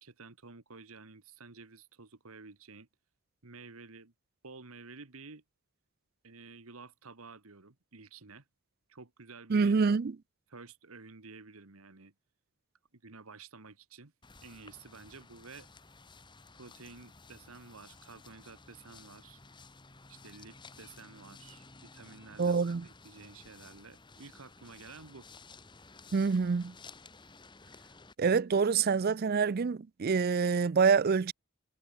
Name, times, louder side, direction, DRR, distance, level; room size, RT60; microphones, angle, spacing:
voice 1, 0.0-2.9 3.4-4.1 4.4-5.4 6.2-8.4 8.9-9.7 10.5-12.1 12.9-14.1 14.4-15.7 16.5-19.4 20.1-25.3, right 4 dB, 70° right, 1.5 m, -51 dB
voice 2, 9.5-10.1 22.4-22.9 26.1-26.7 28.2-31.3, right 5 dB, 45° right, 0.4 m, -26 dB
sound 1, 14.2-28.2, left 4 dB, 20° left, 1.3 m, -55 dB
head